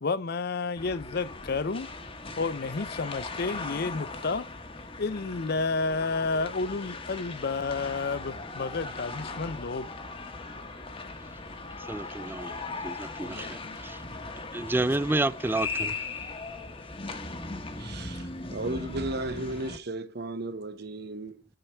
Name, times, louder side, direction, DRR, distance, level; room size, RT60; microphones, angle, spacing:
voice 1, 0.0-1.9 2.4-4.5 5.0-9.9 13.2-13.8, left 4 dB, 55° left, 0.6 m, -31 dB
sound 1, 0.8-19.8, left 3 dB, 30° left, 1.1 m, -39 dB
voice 2, 11.8-14.0 14.5-16.0, right 2 dB, 10° right, 0.4 m, -30 dB
voice 3, 17.8-21.5, right 2 dB, 55° right, 0.9 m, -35 dB
6.6 x 5.8 x 4.5 m
head